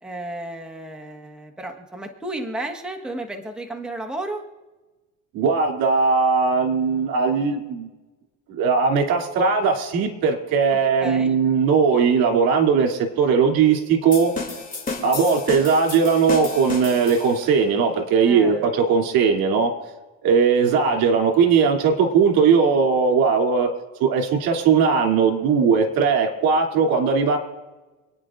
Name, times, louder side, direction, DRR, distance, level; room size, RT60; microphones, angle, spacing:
voice 1, 0.0-4.4 11.0-11.3 18.2-18.7, right 2 dB, ahead, 2 dB, 1.3 m, -33 dB
voice 2, 5.3-7.9 8.5-14.3 15.0-19.7 20.2-23.7 24.0-27.4, right 5 dB, 75° right, 3 dB, 2.9 m, -19 dB
sound 1, 14.1-17.5, left 3 dB, 25° left, 2.8 m, -32 dB
28.5 x 9.6 x 2.5 m, 1.2 s
cardioid pair, 120°, 36 cm